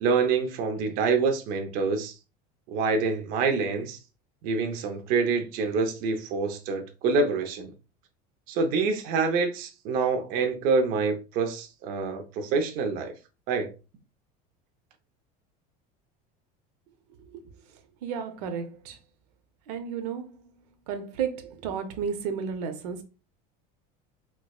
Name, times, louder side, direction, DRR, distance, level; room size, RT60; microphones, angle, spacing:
voice 1, 0.0-2.1 2.7-4.0 4.4-7.7 8.5-13.1 13.5-13.7, right 4 dB, 45° right, 0.6 m, -26 dB
voice 2, 18.0-19.0 19.7-20.3 20.9-23.0, right 7 dB, 90° right, 0.7 m, -32 dB
4.5 x 2.1 x 2.3 m
cardioid pair, 165°, 20 cm